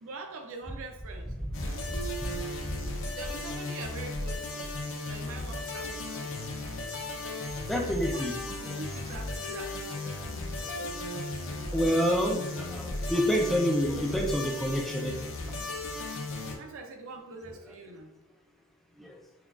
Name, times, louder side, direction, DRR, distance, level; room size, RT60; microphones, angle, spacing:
voice 1, 0.0-1.9 3.1-4.7 5.1-6.3 8.1-9.9 11.6-11.7 16.6-18.1, right 3 dB, 65° right, 4 dB, 0.5 m, -44 dB
voice 2, 1.4-2.3 2.6-2.7 7.7-8.3 10.0-10.2 10.8-11.2 11.7-15.2 19.0-19.2, equal, ahead, 0 dB, 0.3 m, -29 dB
sound 1, 1.5-16.6, left 2 dB, 60° left, 0.6 m, -36 dB
5.6 x 2.3 x 2.4 m, 0.98 s
head